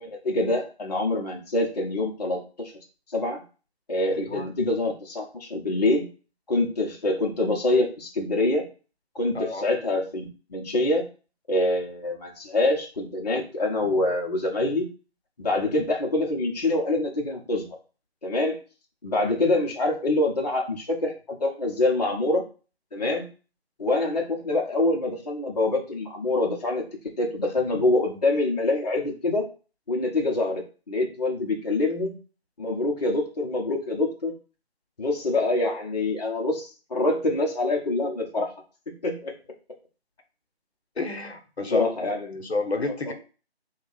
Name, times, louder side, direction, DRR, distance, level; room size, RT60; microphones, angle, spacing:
voice 1, 0.0-2.7 3.1-3.4 3.9-6.1 6.5-8.6 9.1-11.0 11.5-14.9 15.4-17.7 18.2-18.6 19.0-22.4 22.9-23.3 23.8-26.8 27.2-29.5 29.9-32.2 32.6-34.3 35.0-38.5 38.9-39.3 41.7-42.4 43.1-43.2, left 2 dB, 40° left, -1 dB, 0.7 m, -25 dB
voice 2, 41.0-43.1, left 3 dB, 75° left, 6 dB, 0.9 m, -30 dB
3.4 x 2.3 x 3.8 m, 0.35 s
figure-of-eight pair, 165°, 32 cm